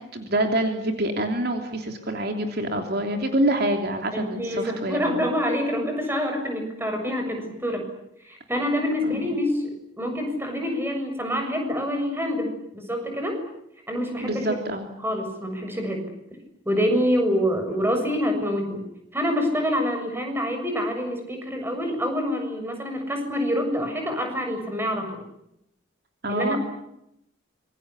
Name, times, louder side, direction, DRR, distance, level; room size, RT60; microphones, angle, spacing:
voice 1, 0.1-5.2 9.0-9.3 14.2-14.8 17.7-17.8 26.2-26.6, right 1 dB, 50° right, 4 dB, 3.1 m, -26 dB
voice 2, 4.1-7.9 8.2-9.7 10.0-13.4 13.9-14.6 15.0-16.1 16.7-18.8 19.1-25.2 26.3-26.6, equal, 10° right, 4 dB, 7.0 m, -26 dB
26.5 x 24.0 x 8.3 m, 0.80 s
head